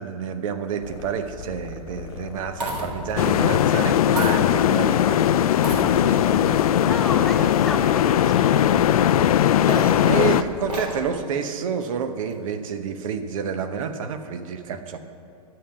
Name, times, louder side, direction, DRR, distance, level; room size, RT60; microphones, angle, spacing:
voice 1, 0.0-6.6 8.2-8.6 10.0-15.0, right 7 dB, 55° right, 9 dB, 0.9 m, -29 dB
sound 1, 0.8-11.2, left 5 dB, 45° left, 0.8 m, -40 dB
sound 2, 0.9-1.3 2.3-3.2 4.2-4.9 5.5-6.3 7.0-7.1 9.3-11.1 12.3-12.8, equal, 85° right, 2.8 m, -33 dB
sound 3, 3.2-10.4, left 10 dB, 65° left, 0.4 m, -19 dB
voice 2, 6.8-8.9, left 2 dB, ahead, 1 dB, 0.6 m, -34 dB
11.0 x 7.6 x 5.8 m, 2.4 s
hypercardioid pair, 130°, 20 cm